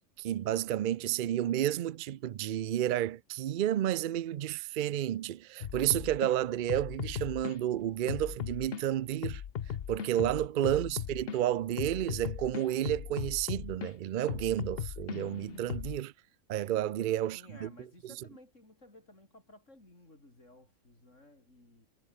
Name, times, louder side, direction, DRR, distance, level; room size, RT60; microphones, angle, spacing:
voice 1, 0.2-9.4 9.9-16.1 16.5-17.7, right 12 dB, 60° right, 0.5 m, -31 dB
sound 1, 5.6-6.3 6.7-7.6 8.1-8.8 9.2-11.4 11.8-13.9 14.3-16.0, left 9 dB, 55° left, 0.9 m, -38 dB
voice 2, 10.7-11.1 17.2-21.9, left 1 dB, 70° left, 7.1 m, -56 dB
omnidirectional pair, 1.3 m